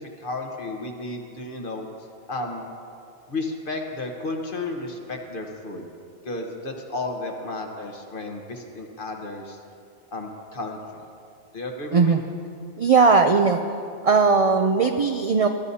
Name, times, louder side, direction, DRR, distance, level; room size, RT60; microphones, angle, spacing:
voice 1, 0.0-1.9 2.3-2.6 3.3-5.9 6.2-9.6 10.1-11.0 11.5-12.2, left 2 dB, 50° left, 2 dB, 1.4 m, -33 dB
voice 2, 12.8-13.6 14.0-15.5, right 5 dB, 60° right, 5 dB, 0.3 m, -18 dB
20.0 x 12.5 x 2.8 m, 2.5 s
omnidirectional pair, 1.2 m